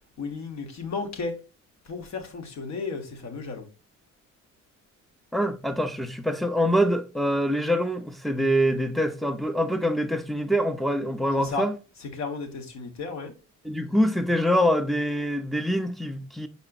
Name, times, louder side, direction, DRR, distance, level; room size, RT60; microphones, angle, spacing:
voice 1, 0.2-1.3 1.9-3.7 11.4-11.7 12.1-13.3, left 4 dB, 65° left, 1.2 m, -33 dB
voice 2, 5.3-11.7 13.6-16.5, equal, ahead, 0.5 m, -25 dB
4.8 x 4.1 x 2.3 m
cardioid pair, 90°, 30 cm